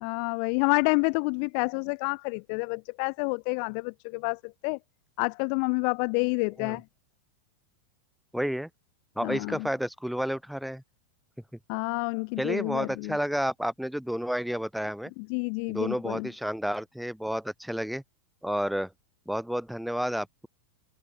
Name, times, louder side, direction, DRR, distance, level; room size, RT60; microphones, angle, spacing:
voice 1, 0.0-4.8 5.2-6.8 9.2-9.7 11.7-13.2 15.2-16.3, left 40 dB or more, 45° left, 0.7 m, -29 dB
voice 2, 8.3-8.7 9.2-10.8 12.4-15.1 15.7-18.0 18.4-18.9 19.3-20.5, equal, ahead, 2.6 m, -30 dB
open air
figure-of-eight pair, 90°, 0 cm